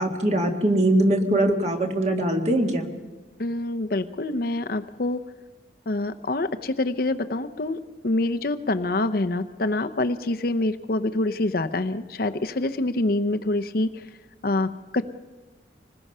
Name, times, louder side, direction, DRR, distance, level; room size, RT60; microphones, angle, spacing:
voice 1, 0.0-2.9, right 1 dB, 40° right, 3 dB, 2.0 m, -22 dB
voice 2, 3.4-5.2 5.9-14.0 14.4-15.0, left 2 dB, 55° left, 8 dB, 0.7 m, -26 dB
26.0 x 20.0 x 5.5 m, 1.3 s
head